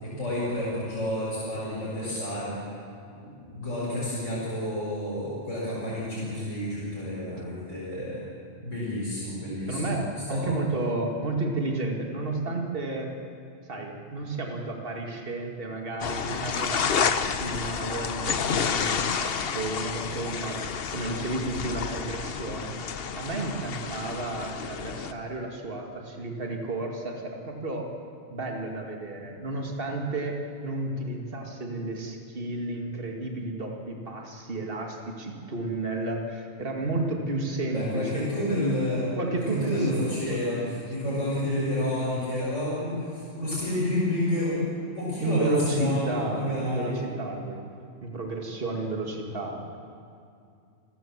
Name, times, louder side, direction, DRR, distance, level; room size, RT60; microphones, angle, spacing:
voice 1, 0.0-2.6 3.2-8.2 8.6-10.0 10.3-10.5 37.7-39.1 39.3-40.6 40.9-44.7 45.0-47.0, left 1 dB, 80° left, -8 dB, 6.1 m, -29 dB
voice 2, 9.7-13.1 13.7-20.6 20.9-22.7 23.1-27.9 28.3-38.3 39.2-40.8 45.2-47.6 48.0-49.8, right 2 dB, 50° right, 1 dB, 2.4 m, -32 dB
sound 1, 16.0-25.1, left 6 dB, 55° left, 1.0 m, -30 dB
28.5 x 15.5 x 7.5 m, 2.4 s
omnidirectional pair, 1.2 m